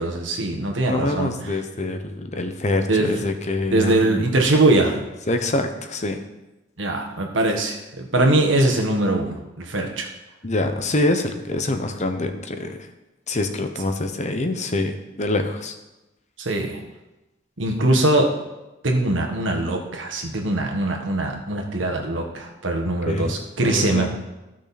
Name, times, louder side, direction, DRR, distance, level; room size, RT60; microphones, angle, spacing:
voice 1, 0.0-1.3 2.9-3.1 3.7-5.0 6.8-10.1 16.4-16.8 17.6-18.3 18.8-24.1, right 2 dB, 80° right, 2 dB, 1.7 m, -21 dB
voice 2, 0.9-4.3 5.3-6.2 10.4-12.9 13.3-15.8 23.1-23.3 23.6-24.1, left 2 dB, 40° left, 7 dB, 0.9 m, -25 dB
14.5 x 6.3 x 4.3 m, 1.0 s
head